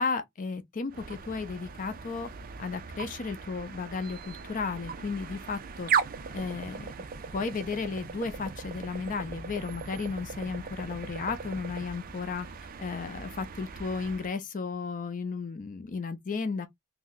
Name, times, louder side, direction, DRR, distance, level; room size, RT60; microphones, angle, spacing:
voice 1, 0.0-2.3 2.6-5.9 6.3-6.9 7.3-12.5 12.8-16.7, left 4 dB, 35° left, 0.4 m, -34 dB
sound 1, 0.9-14.3, right 6 dB, 40° right, 0.4 m, -38 dB
2.7 x 2.1 x 3.7 m
head